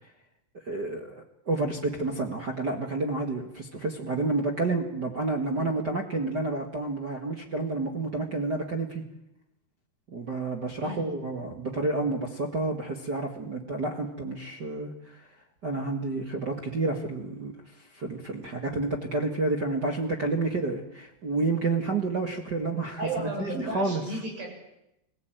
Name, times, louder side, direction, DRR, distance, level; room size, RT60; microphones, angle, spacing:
voice 1, 0.6-9.0 10.1-15.3 15.6-24.0, right 3 dB, 45° right, 0 dB, 1.3 m, -30 dB
voice 2, 10.8-11.2 23.0-24.5, right 2 dB, 75° right, 0 dB, 10.0 m, -33 dB
26.0 x 17.0 x 9.2 m, 0.84 s
omnidirectional pair, 4.8 m